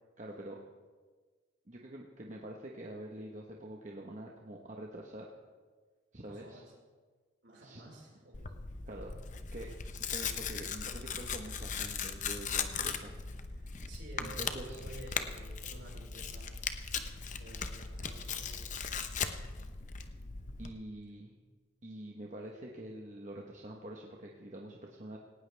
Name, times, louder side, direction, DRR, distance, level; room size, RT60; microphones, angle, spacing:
voice 1, 0.2-0.6 1.7-5.2 6.1-6.6 7.6-7.8 8.9-9.1 9.5-9.7 10.0-13.1 13.5-13.9 14.2-14.8 20.6-21.3 21.8-25.2, right 1 dB, 35° right, -1 dB, 1.2 m, -46 dB
voice 2, 6.3-6.7 7.4-8.5 13.9-16.5 17.4-18.8, right 1 dB, 60° right, -2 dB, 5.0 m, -51 dB
Tearing, 8.3-20.7, left 6 dB, 40° left, 0.8 m, -38 dB
18.5 x 18.0 x 3.5 m, 1.5 s
head